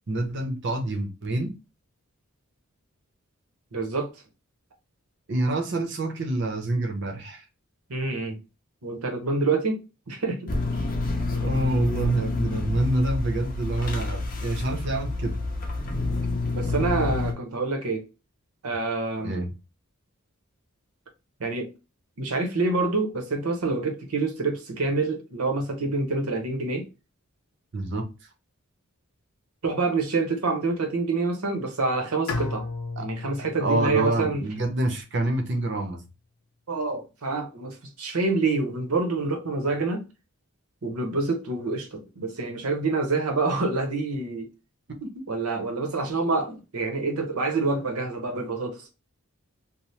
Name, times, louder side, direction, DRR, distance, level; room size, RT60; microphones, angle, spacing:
voice 1, 0.1-1.5 5.3-7.4 11.3-15.4 19.2-19.5 27.7-28.1 33.0-33.1 33.4-36.0 45.0-45.2, right 1 dB, 55° right, 0.6 m, -27 dB
voice 2, 3.7-4.1 7.9-8.4 8.8-10.5 16.5-18.0 18.6-19.3 21.4-21.7 22.2-26.9 29.6-32.7 33.0-34.4 36.7-40.1 40.8-44.5 45.3-48.9, right 3 dB, 85° right, 0.8 m, -27 dB
sound 1, 10.5-17.3, left 3 dB, 40° left, 0.6 m, -28 dB
Bowed string instrument, 32.3-35.3, left 3 dB, 90° left, 0.5 m, -35 dB
2.8 x 2.0 x 3.1 m
head